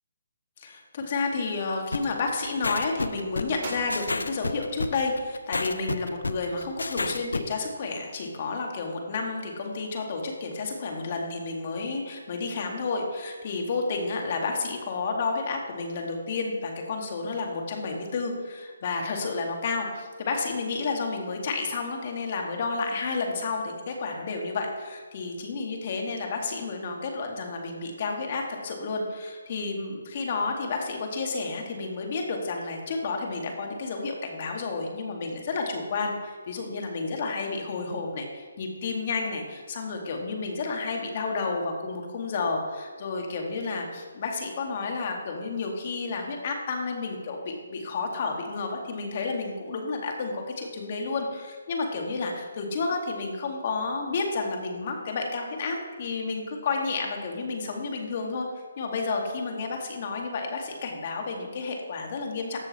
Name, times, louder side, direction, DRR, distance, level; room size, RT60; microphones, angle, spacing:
voice 1, 0.6-58.5 58.8-62.6, left 4 dB, 45° left, 2 dB, 2.0 m, -31 dB
Gunshot gunfire, 1.7-2.2 3.6-5.1, right 2 dB, 30° right, 2.8 m, -43 dB
sound 1, 1.9-7.5, left 3 dB, 85° left, 0.6 m, -30 dB
14.0 x 6.5 x 4.2 m, 1.5 s
figure-of-eight pair, 150°, 0 cm